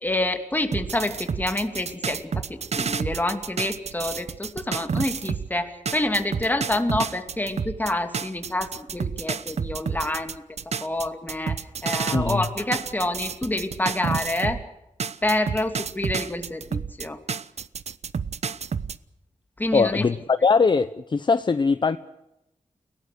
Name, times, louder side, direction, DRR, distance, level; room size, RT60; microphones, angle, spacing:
voice 1, 0.0-10.4 10.8-14.6 15.2-17.2 19.6-20.1, left 1 dB, 15° left, 6 dB, 2.7 m, -27 dB
sound 1, 0.7-5.5 5.9-14.6 15.0-19.0, right 6 dB, 60° right, 0.9 m, -30 dB
voice 2, 12.1-12.4 19.7-22.0, left 4 dB, 40° left, 12 dB, 0.8 m, -21 dB
30.0 x 18.0 x 6.6 m, 0.89 s
wide cardioid pair, 145°, 13 cm